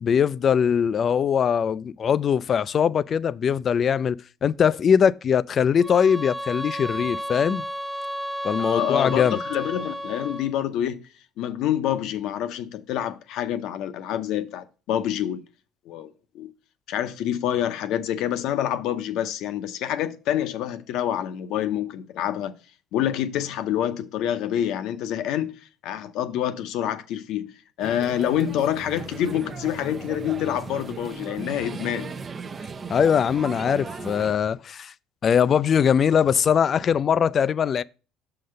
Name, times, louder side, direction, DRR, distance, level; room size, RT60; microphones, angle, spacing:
voice 1, 0.0-7.6 8.4-9.4 32.9-34.9 35.2-37.8, left 7 dB, 45° left, 0.3 m, -21 dB
sound 1, 5.8-10.6, equal, 5° right, 1.0 m, -32 dB
voice 2, 8.6-11.0 11.4-15.4 15.9-16.5 16.9-22.5 22.9-27.5 27.8-32.1, left 11 dB, 70° left, 0.7 m, -27 dB
sound 2, 27.8-34.3, right 5 dB, 35° right, 0.5 m, -37 dB
6.8 x 3.9 x 6.4 m
supercardioid pair, 90°, 0 cm